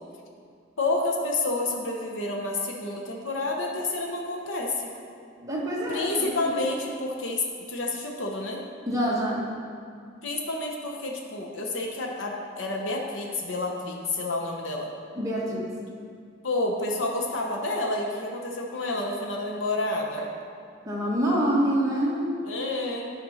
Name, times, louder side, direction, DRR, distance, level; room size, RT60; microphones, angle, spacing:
voice 1, 0.8-4.9 5.9-8.6 10.2-14.9 16.4-20.3 22.4-23.1, left 2 dB, 80° left, 0 dB, 1.0 m, -29 dB
voice 2, 5.4-6.1 6.4-6.5 8.9-9.5 15.1-15.6 20.8-22.3, equal, 20° right, -6 dB, 1.5 m, -26 dB
11.0 x 4.4 x 5.7 m, 2.2 s
head